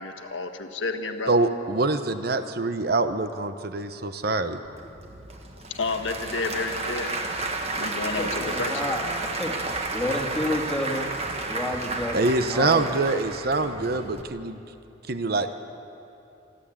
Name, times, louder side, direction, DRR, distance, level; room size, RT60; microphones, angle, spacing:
voice 1, 0.0-1.3 5.7-7.1 7.8-8.7, left 3 dB, 90° left, 6 dB, 1.5 m, -30 dB
voice 2, 1.3-4.6 12.1-14.6 15.1-15.5, right 3 dB, 55° right, 9 dB, 0.9 m, -25 dB
Applause / Crowd, 4.6-14.2, right 2 dB, 35° right, 1.5 m, -32 dB
voice 3, 7.8-11.1 11.4-13.0, left 1 dB, 5° left, -1 dB, 2.2 m, -31 dB
24.0 x 14.0 x 8.8 m, 2.7 s
head